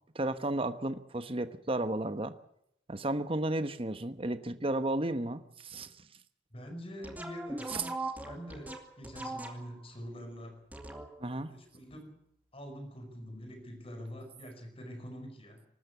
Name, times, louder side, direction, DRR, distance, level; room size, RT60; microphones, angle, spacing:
voice 1, 0.1-2.3 2.9-5.9 7.7-7.8 11.2-11.5, right 1 dB, 30° right, 11 dB, 1.1 m, -33 dB
voice 2, 6.5-8.0 8.2-10.7 11.4-12.1 12.5-15.7, equal, 30° left, 6 dB, 5.2 m, -45 dB
sound 1, 7.0-9.9 10.7-11.4, right 2 dB, 10° right, 2.4 m, -40 dB
24.5 x 13.5 x 8.2 m, 0.75 s
head